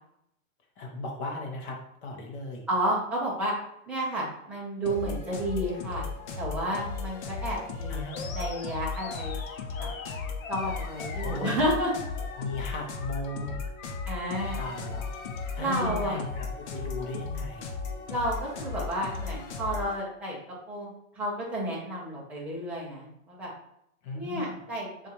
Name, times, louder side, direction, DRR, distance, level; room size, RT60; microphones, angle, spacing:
voice 1, 0.8-2.7 7.9-8.4 11.2-11.6 12.4-13.6 14.6-15.0 15.5-17.7 24.0-24.5, left 2 dB, 25° left, 1 dB, 0.8 m, -36 dB
voice 2, 2.7-3.5 3.9-6.1 6.4-8.0 8.3-9.4 9.8-9.9 10.5-12.1 14.1-14.6 15.6-16.2 18.1-20.4 20.7-23.5 24.1-24.9, right 1 dB, 5° right, -6 dB, 0.5 m, -31 dB
sound 1, 4.8-20.0, left 4 dB, 55° left, 0.8 m, -36 dB
Animal, 8.1-16.2, left 5 dB, 90° left, 0.8 m, -43 dB
6.7 x 2.5 x 2.8 m, 0.76 s
hypercardioid pair, 160°, 40 cm